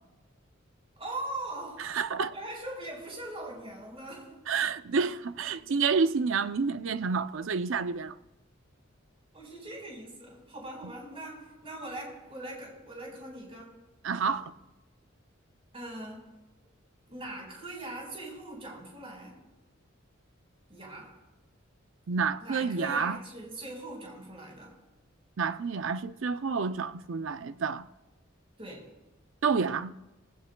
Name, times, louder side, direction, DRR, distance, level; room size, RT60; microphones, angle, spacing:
voice 1, 1.0-2.0 2.3-4.4 9.3-13.8 15.7-16.3 17.1-19.4 20.7-21.2 22.4-24.8 28.6-28.9, right 1 dB, 30° right, 4.5 m, -41 dB
voice 2, 1.8-2.3 4.5-8.1 14.0-14.5 22.1-23.2 25.4-27.9 29.4-29.9, right 5 dB, 75° right, 0.6 m, -29 dB
19.5 x 16.5 x 2.3 m
head